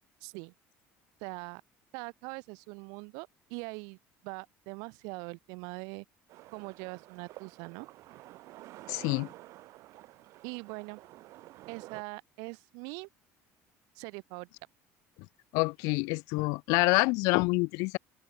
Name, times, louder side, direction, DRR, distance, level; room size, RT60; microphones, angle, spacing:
voice 1, 0.2-0.5 1.2-1.6 1.9-4.0 4.2-6.0 6.5-7.9 10.4-11.0 11.7-13.1 14.0-14.5, right 33 dB, 85° right, 3.9 m, -42 dB
sound 1, 6.3-12.0, right 17 dB, 55° right, 2.4 m, -50 dB
voice 2, 8.9-9.3 15.5-18.0, left 28 dB, 75° left, 1.6 m, -27 dB
open air
cardioid pair, 165°, 6 cm